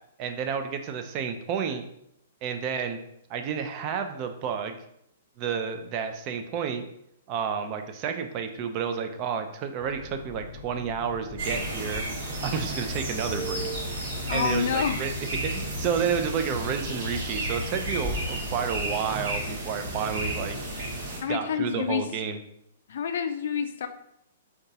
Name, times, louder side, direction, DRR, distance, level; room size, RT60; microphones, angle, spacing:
voice 1, 0.2-1.9 2.4-3.0 3.3-4.8 5.4-6.9 7.3-12.0 12.4-13.7 14.3-15.1 15.5-20.6 21.3-22.4, right 7 dB, 35° right, 6 dB, 0.4 m, -30 dB
sound 1, 9.8-18.7, left 3 dB, 30° left, 0.8 m, -40 dB
sound 2, 11.4-21.2, right 1 dB, 55° right, 1.1 m, -33 dB
voice 2, 14.3-15.0 21.2-22.1 22.9-23.9, left 7 dB, 65° left, 8 dB, 0.3 m, -28 dB
3.7 x 2.3 x 2.7 m, 0.75 s
hypercardioid pair, 125°, 0 cm